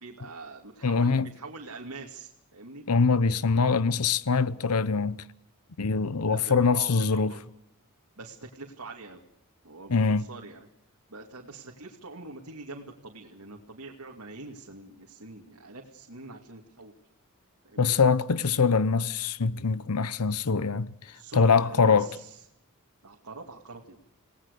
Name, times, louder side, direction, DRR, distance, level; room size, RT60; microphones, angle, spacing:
voice 1, 0.0-2.8 6.3-7.4 8.2-9.2 9.6-10.7 11.1-16.9 17.6-18.0 19.7-19.9 21.1-22.4 23.0-24.0, right 3 dB, 80° right, 2.6 m, -44 dB
voice 2, 0.8-1.3 2.9-5.2 5.8-7.3 9.9-10.3 17.8-22.1, left 5 dB, 85° left, 0.8 m, -24 dB
28.5 x 19.0 x 6.7 m
head